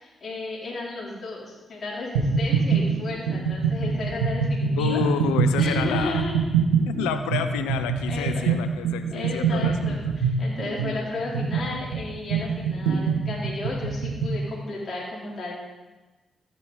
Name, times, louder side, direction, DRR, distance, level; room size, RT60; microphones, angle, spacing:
voice 1, 0.0-5.0 5.6-6.4 8.1-8.5 9.1-15.7, left 2 dB, 60° left, -5 dB, 3.6 m, -33 dB
sound 1, 2.1-14.4, right 5 dB, 85° right, 2.0 m, -24 dB
voice 2, 4.8-6.2 6.9-9.9, left 8 dB, 90° left, 8 dB, 0.6 m, -29 dB
13.5 x 10.5 x 4.0 m, 1.2 s
hypercardioid pair, 40°, 0 cm